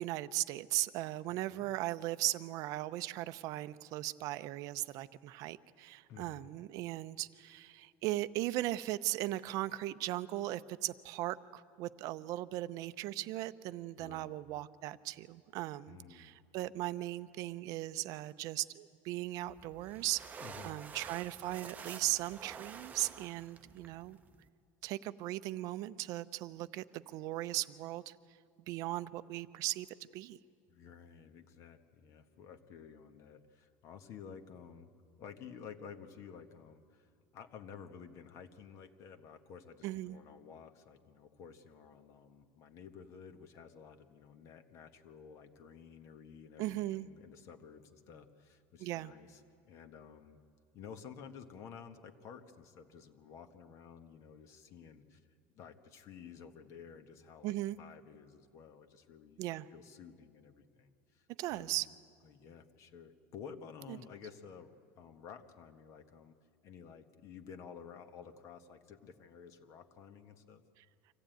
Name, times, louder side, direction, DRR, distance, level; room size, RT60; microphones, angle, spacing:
voice 1, 0.0-24.2 24.8-28.1 28.7-29.9 30.1-30.4 39.8-40.2 46.6-47.1 48.8-49.1 57.4-57.8 59.4-59.7 61.4-61.9 63.9-64.0, right 16 dB, 55° right, 14 dB, 0.6 m, -38 dB
voice 2, 6.1-6.5 14.0-14.3 15.9-16.4 20.4-20.8 30.7-34.9 35.2-50.4 50.7-55.2 55.5-59.4 59.7-61.9 62.2-66.3 66.6-70.6, left 7 dB, 45° left, 7 dB, 1.5 m, -52 dB
sound 1, 19.5-24.5, right 6 dB, 25° right, 0.8 m, -50 dB
25.0 x 15.0 x 9.2 m, 2.4 s
supercardioid pair, 135°, 7 cm